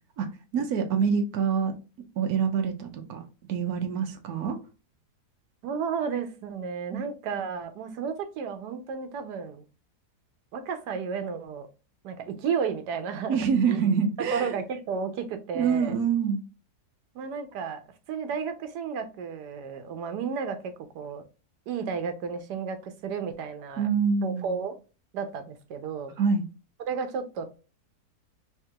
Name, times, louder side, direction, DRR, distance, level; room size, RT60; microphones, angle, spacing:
voice 1, 0.5-1.7 2.2-3.2 3.5-4.6 6.9-7.0 13.3-14.5 15.5-16.4 23.8-24.6 26.2-26.5, right 6 dB, 70° right, 1.2 m, -26 dB
voice 2, 5.6-9.6 10.5-11.7 12.0-13.4 13.7-13.9 14.3-16.0 17.1-17.8 18.1-21.2 21.7-23.9 24.2-24.8 25.1-26.2 26.8-27.5, right 6 dB, 90° right, 1.3 m, -32 dB
3.6 x 3.5 x 2.8 m
omnidirectional pair, 1.7 m